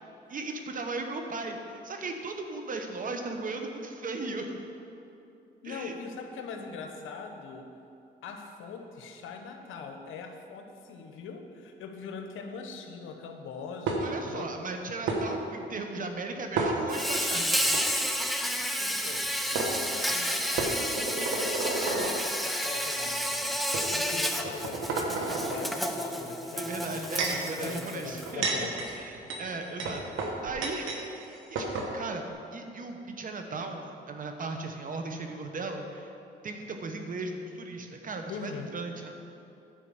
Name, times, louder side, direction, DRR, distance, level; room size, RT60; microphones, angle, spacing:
voice 1, 0.3-4.6 5.6-5.9 14.0-17.9 26.6-28.7 29.0-32.2 32.5-36.1 36.4-39.1, right 3 dB, 45° right, 4 dB, 1.0 m, -37 dB
voice 2, 5.6-7.7 8.2-14.5 18.8-20.8 21.8-27.1 27.6-29.0 38.3-38.7, left 5 dB, 85° left, 4 dB, 1.0 m, -41 dB
sound 1, 13.9-14.3 15.1-15.2 16.6-17.2 17.6-17.8 19.1-19.2 19.6-19.7 20.6-22.2 22.9-23.1 23.7-23.9 24.4-25.6 26.7-27.5 28.1-31.0 31.3-31.4 31.6-31.9, right 3 dB, 80° right, 1.3 m, -31 dB
Insect, 16.9-28.3, equal, ahead, 0.6 m, -31 dB
10.0 x 4.7 x 7.1 m, 2.7 s
cardioid pair, 90°, 20 cm